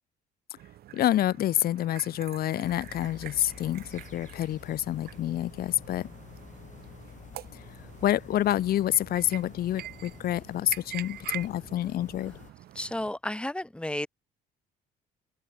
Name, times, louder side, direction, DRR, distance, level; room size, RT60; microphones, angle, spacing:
sound 1, 0.6-13.1, right 13 dB, 70° right, 3.2 m, -45 dB
voice 1, 0.9-6.1 8.0-12.3, left 12 dB, 65° left, 2.0 m, -28 dB
sound 2, 2.6-12.5, left 8 dB, 45° left, 5.3 m, -49 dB
voice 2, 12.7-14.1, left 1 dB, 5° left, 7.4 m, -32 dB
open air
cardioid pair, 110°, 17 cm